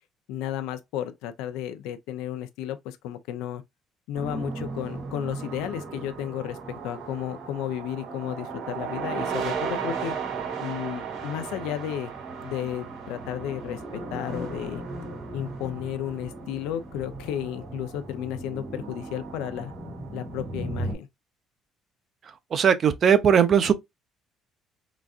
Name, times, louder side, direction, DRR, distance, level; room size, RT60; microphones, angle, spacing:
voice 1, 0.3-3.6 4.1-10.2 10.6-12.1 12.4-13.8 14.1-14.8 15.3-19.7 20.1-21.1, left 11 dB, 90° left, 0.4 m, -33 dB
sound 1, 4.1-21.0, right 4 dB, 80° right, 2.2 m, -35 dB
voice 2, 22.5-23.7, right 7 dB, 45° right, 0.4 m, -19 dB
3.9 x 2.4 x 2.3 m
cardioid pair, 110°, 0 cm